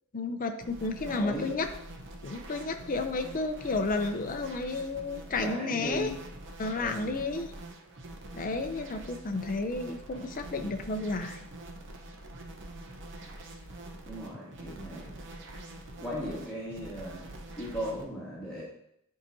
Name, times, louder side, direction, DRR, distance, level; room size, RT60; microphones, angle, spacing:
voice 1, 0.1-1.7 2.2-6.1 6.6-7.5 8.3-11.5, left 3 dB, 40° left, 6 dB, 0.5 m, -32 dB
sound 1, 0.6-18.1, right 1 dB, 55° right, 0.8 m, -45 dB
voice 2, 1.1-1.6 5.3-6.2 6.8-7.1 14.1-15.1 16.0-17.3 17.5-18.6, equal, 5° left, -9 dB, 1.6 m, -37 dB
10.0 x 4.7 x 2.7 m, 0.75 s
head